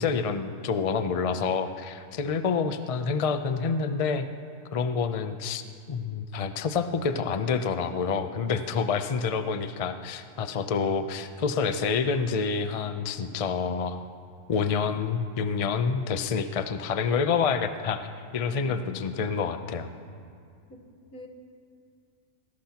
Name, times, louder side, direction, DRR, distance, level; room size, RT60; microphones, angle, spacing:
voice 1, 0.0-4.3 4.7-5.6 5.9-14.1 14.5-18.0 18.3-19.9, left 5 dB, 55° left, 9 dB, 0.4 m, -28 dB
voice 2, 18.5-19.1 20.7-20.8 21.1-21.3, left 4 dB, 85° left, 3 dB, 1.9 m, -43 dB
20.0 x 17.5 x 2.9 m, 2.4 s
omnidirectional pair, 1.5 m